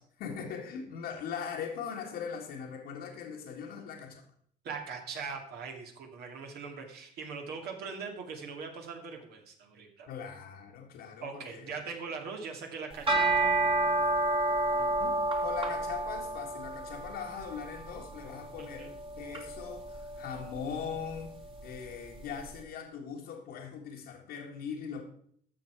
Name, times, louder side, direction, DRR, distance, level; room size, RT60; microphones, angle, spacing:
voice 1, 0.2-4.2 10.1-11.8 14.7-21.4 21.6-25.0, left 7 dB, 80° left, -3 dB, 1.7 m, -40 dB
voice 2, 4.6-10.1 11.2-13.5 18.6-18.9, right 5 dB, 70° right, 2 dB, 2.3 m, -41 dB
sound 1, 12.9-22.3, right 2 dB, 30° right, 1.9 m, -31 dB
12.5 x 6.7 x 4.6 m, 0.63 s
cardioid pair, 110°, 17 cm